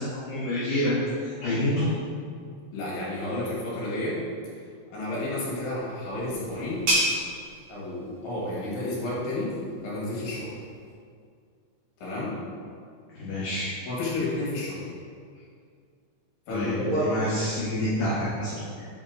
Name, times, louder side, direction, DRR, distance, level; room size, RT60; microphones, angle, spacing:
voice 1, 0.0-1.9 13.1-13.7 16.5-18.8, left 1 dB, 80° left, -9 dB, 2.0 m, -28 dB
voice 2, 2.7-4.2 4.9-6.9 7.7-9.5 9.8-10.6 12.0-12.4 13.9-14.8 16.5-17.2, left 1 dB, 55° left, -7 dB, 3.0 m, -30 dB
sound 1, 5.5-10.9, right 1 dB, 60° right, 2.0 m, -33 dB
7.7 x 4.3 x 3.9 m, 2.2 s
omnidirectional pair, 5.8 m